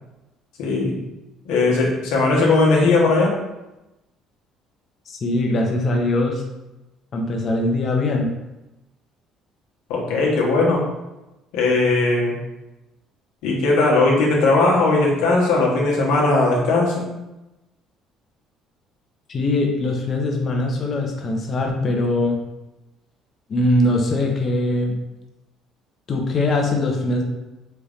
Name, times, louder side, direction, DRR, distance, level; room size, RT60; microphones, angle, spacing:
voice 1, 0.6-1.0 1.4-3.3 9.9-10.8 11.5-12.3 13.4-17.0, left 3 dB, 85° left, -2 dB, 1.2 m, -18 dB
voice 2, 5.1-6.4 7.1-8.3 19.3-22.4 23.5-24.9 26.1-27.2, left 2 dB, 40° left, 2 dB, 0.9 m, -21 dB
4.4 x 2.6 x 3.5 m, 0.98 s
cardioid pair, 100°, 0 cm